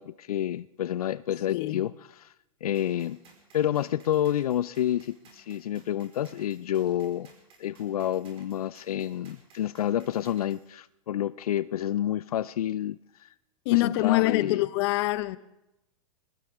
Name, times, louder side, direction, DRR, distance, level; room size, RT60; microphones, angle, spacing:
voice 1, 0.0-1.9 2.2-2.3 2.6-3.2 3.5-7.3 7.6-13.3 13.7-14.6, left 11 dB, 85° left, 0.5 m, -29 dB
voice 2, 1.5-1.8 13.6-15.4, left 18 dB, 45° left, 0.8 m, -25 dB
sound 1, 2.7-10.6, right 4 dB, 30° right, 4.5 m, -58 dB
22.0 x 18.5 x 3.6 m
hypercardioid pair, 130°, 18 cm